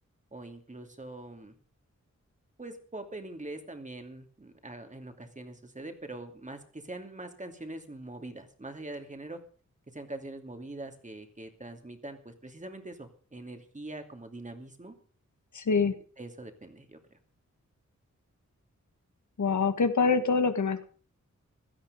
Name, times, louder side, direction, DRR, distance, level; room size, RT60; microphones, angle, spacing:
voice 1, 0.3-1.6 2.6-9.4 9.9-14.9 16.2-17.0, right 2 dB, 25° right, 6 dB, 2.6 m, -43 dB
voice 2, 15.5-15.9 19.4-20.8, left 5 dB, 75° left, 9 dB, 1.8 m, -25 dB
16.5 x 13.0 x 5.2 m, 0.42 s
wide cardioid pair, 110°, 29 cm